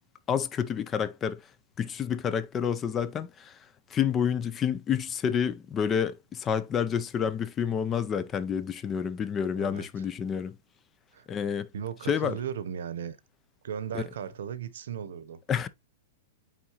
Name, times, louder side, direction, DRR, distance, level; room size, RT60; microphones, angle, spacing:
voice 1, 0.3-1.4 1.8-3.6 3.9-10.6 11.3-11.7 12.1-12.4 13.9-14.0 15.5-15.7, left 7 dB, 15° left, 0.4 m, -29 dB
voice 2, 9.6-9.9 11.1-11.3 11.7-13.2 13.6-15.4, right 8 dB, 70° right, 0.8 m, -36 dB
8.5 x 3.9 x 2.9 m
supercardioid pair, 170°, 0 cm